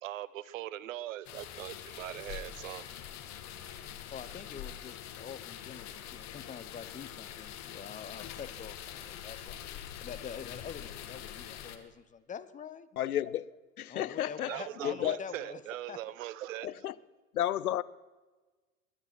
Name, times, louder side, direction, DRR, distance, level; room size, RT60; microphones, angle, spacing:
voice 1, 0.0-2.9 14.5-16.7, right 13 dB, 60° right, 0.9 m, -40 dB
sound 1, 1.2-11.8, left 10 dB, 40° left, 1.6 m, -44 dB
voice 2, 4.1-12.9 13.9-15.6 15.9-16.0, left 7 dB, 15° left, 0.9 m, -46 dB
voice 3, 13.0-13.5 13.8-15.2 16.6-16.9 17.3-17.8, left 12 dB, 75° left, 0.7 m, -32 dB
21.5 x 9.9 x 6.2 m
figure-of-eight pair, 85°, 44 cm